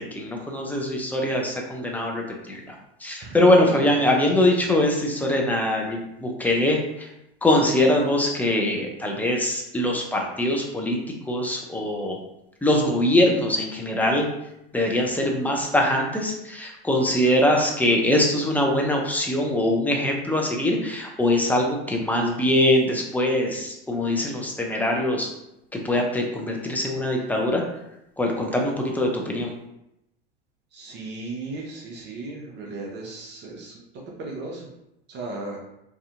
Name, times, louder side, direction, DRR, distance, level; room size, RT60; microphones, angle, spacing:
voice 1, 0.0-2.6 3.0-6.8 7.4-11.0 11.3-12.2 12.6-14.3 14.7-25.3 25.7-27.6 28.2-29.5, left 1 dB, 5° left, 0 dB, 0.5 m, -22 dB
voice 2, 30.7-33.7 34.2-34.7 35.1-35.6, right 3 dB, 40° right, -1 dB, 0.6 m, -36 dB
2.6 x 2.5 x 2.4 m, 0.84 s
figure-of-eight pair, 75°, 29 cm